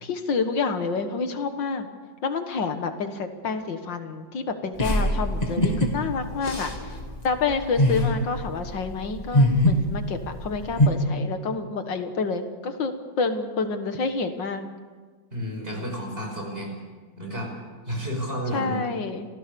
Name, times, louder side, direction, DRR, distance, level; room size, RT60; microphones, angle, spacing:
voice 1, 0.0-1.9 2.2-6.7 7.2-14.6 18.5-19.3, left 4 dB, 75° left, 7 dB, 2.2 m, -28 dB
sound 1, 4.8-10.9, left 1 dB, 20° left, 2.7 m, -23 dB
voice 2, 15.3-16.7 17.2-17.5 17.9-18.9, equal, 30° right, 1 dB, 5.9 m, -31 dB
28.0 x 17.5 x 6.9 m, 1.4 s
omnidirectional pair, 2.0 m